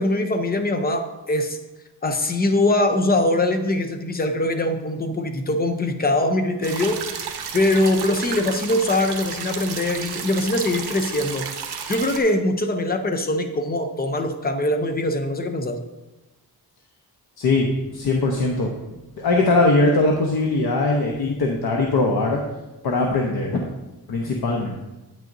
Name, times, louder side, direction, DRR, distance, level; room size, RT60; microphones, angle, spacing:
voice 1, 0.0-1.6 2.0-7.3 7.5-11.5 11.9-15.8, left 1 dB, 25° left, 6 dB, 0.7 m, -22 dB
sound 1, 6.6-12.2, right 6 dB, 70° right, 1.0 m, -32 dB
voice 2, 17.4-18.7 19.2-22.4 22.8-23.6 24.1-24.7, left 2 dB, 65° left, 0 dB, 1.0 m, -21 dB
9.1 x 9.1 x 2.6 m, 1.0 s
wide cardioid pair, 170°, 40 cm